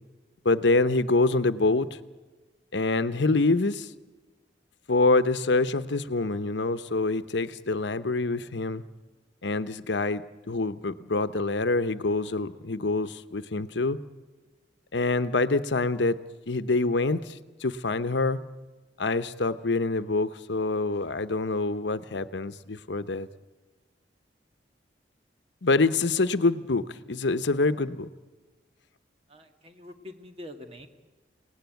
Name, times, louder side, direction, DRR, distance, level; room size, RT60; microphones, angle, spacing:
voice 1, 0.4-1.9 2.7-3.9 4.9-8.8 9.4-14.0 14.9-16.2 16.5-18.4 19.0-23.3 25.6-28.1, left 3 dB, 80° left, 12 dB, 0.9 m, -26 dB
voice 2, 29.3-30.9, left 1 dB, 35° right, 6 dB, 1.8 m, -45 dB
29.5 x 18.0 x 9.3 m, 1.3 s
head